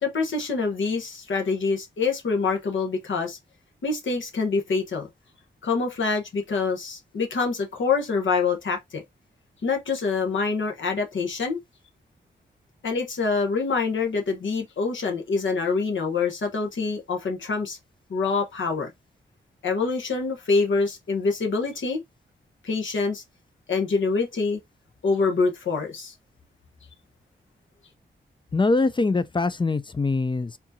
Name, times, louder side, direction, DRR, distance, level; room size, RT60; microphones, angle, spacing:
voice 1, 0.0-3.4 3.8-5.1 5.6-9.0 9.6-11.6 12.8-17.8 18.1-18.9 19.6-22.0 22.6-23.2 23.7-24.6 25.0-26.1, left 4 dB, 70° left, 1.1 m, -25 dB
voice 2, 28.5-30.6, left 3 dB, 25° left, 0.5 m, -23 dB
4.4 x 2.7 x 2.7 m
supercardioid pair, 45°, 21 cm